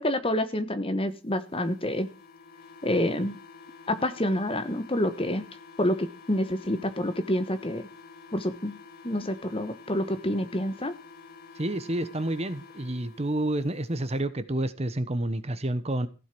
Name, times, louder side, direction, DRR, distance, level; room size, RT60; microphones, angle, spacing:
voice 1, 0.0-2.1 2.8-3.4 3.9-5.4 5.8-7.8 8.3-8.8 9.0-10.9, left 1 dB, 25° left, 1.2 m, -28 dB
sound 1, 1.4-13.5, left 4 dB, 45° left, 1.6 m, -49 dB
voice 2, 11.6-16.1, right 1 dB, 30° right, 1.0 m, -29 dB
15.0 x 8.2 x 6.1 m
head